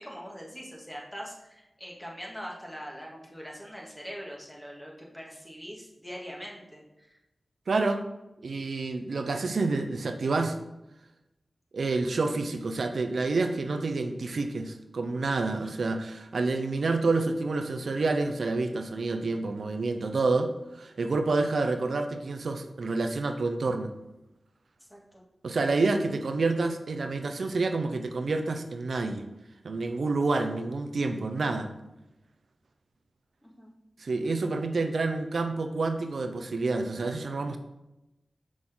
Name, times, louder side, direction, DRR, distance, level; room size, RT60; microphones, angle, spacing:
voice 1, 0.0-7.2 15.5-15.8 24.8-25.2 33.4-33.7, equal, 10° left, -2 dB, 1.9 m, -43 dB
voice 2, 7.7-8.0 8.4-10.6 11.7-23.9 25.4-29.3 29.6-31.7 34.0-37.6, right 3 dB, 80° right, 6 dB, 0.6 m, -28 dB
6.2 x 6.1 x 3.8 m, 0.95 s
wide cardioid pair, 60°, 0 cm